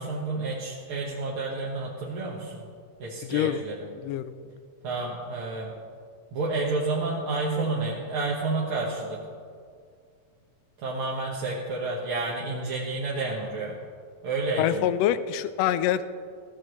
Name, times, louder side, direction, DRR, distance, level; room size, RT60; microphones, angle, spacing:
voice 1, 0.0-2.6 3.0-3.9 4.8-5.8 6.3-9.2 10.8-13.8 14.2-14.9, right 3 dB, 50° right, -4 dB, 2.0 m, -30 dB
voice 2, 3.2-3.6 4.0-4.5 14.6-16.0, left 11 dB, 80° left, 13 dB, 1.5 m, -26 dB
21.0 x 15.0 x 3.1 m, 2.2 s
omnidirectional pair, 3.4 m